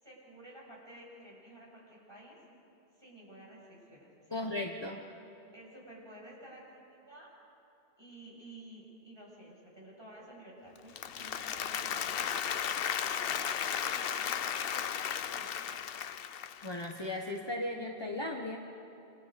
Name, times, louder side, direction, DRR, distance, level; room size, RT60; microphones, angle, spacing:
voice 1, 0.0-2.4 3.0-4.4 5.5-6.6 6.9-7.3 8.0-12.3 13.0-15.6, right 1 dB, 25° right, -4 dB, 7.3 m, -52 dB
voice 2, 4.3-5.0 16.6-18.6, left 2 dB, 25° left, 1 dB, 1.4 m, -36 dB
Applause, 10.8-17.0, left 8 dB, 65° left, 0.9 m, -35 dB
28.0 x 27.0 x 5.3 m, 2.9 s
omnidirectional pair, 1.0 m